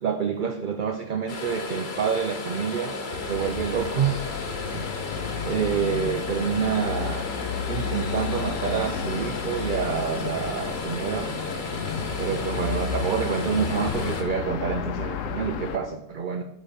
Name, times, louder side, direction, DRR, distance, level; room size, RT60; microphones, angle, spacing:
voice 1, 0.0-4.2 4.7-5.0 5.4-7.3 7.7-11.3 12.2-16.4, right 7 dB, 60° right, 6 dB, 0.5 m, -28 dB
sound 1, 1.3-14.2, left 3 dB, 45° left, 1.0 m, -34 dB
sound 2, 3.1-15.8, left 7 dB, 85° left, 1.1 m, -32 dB
Bird, 8.1-14.0, equal, 85° right, 2.0 m, -43 dB
7.1 x 5.7 x 5.1 m, 0.93 s
omnidirectional pair, 1.3 m